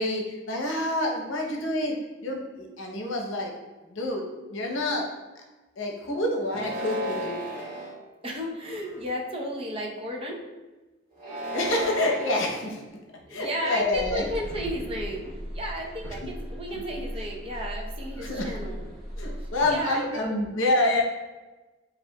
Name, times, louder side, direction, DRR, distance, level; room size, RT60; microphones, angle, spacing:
voice 1, 0.0-2.0 2.2-3.5 3.9-4.2 4.5-5.1 5.4-5.5 5.8-7.4 11.5-12.8 13.3-14.3 18.2-18.6 19.2-21.0, left 1 dB, 65° left, 1 dB, 0.8 m, -27 dB
sound 1, 6.4-7.9 8.6-9.1 11.1-12.6, equal, 45° right, 1.4 m, -34 dB
voice 2, 8.2-10.4 13.3-18.8 19.4-20.3, equal, 30° right, -1 dB, 0.7 m, -33 dB
sound 2, 13.9-19.5, equal, 5° left, 1.1 m, -37 dB
7.4 x 2.5 x 2.2 m, 1.2 s
head